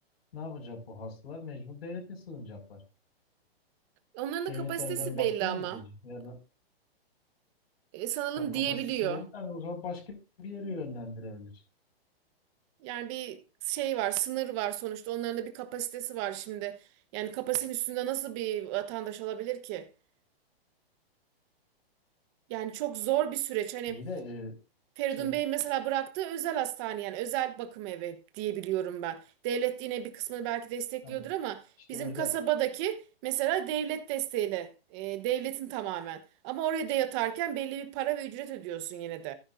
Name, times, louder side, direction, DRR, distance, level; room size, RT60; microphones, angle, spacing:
voice 1, 0.3-2.8 4.5-6.4 8.4-11.5 23.9-24.5 25.2-25.3 31.0-31.3 31.9-32.4, left 3 dB, 75° left, 5.6 m, -40 dB
voice 2, 4.1-5.8 7.9-9.2 12.8-16.8 17.1-19.9 22.5-24.0 25.0-31.6 31.9-39.3, right 12 dB, 30° right, 1.1 m, -32 dB
14.0 x 10.0 x 2.6 m
hypercardioid pair, 160°, 31 cm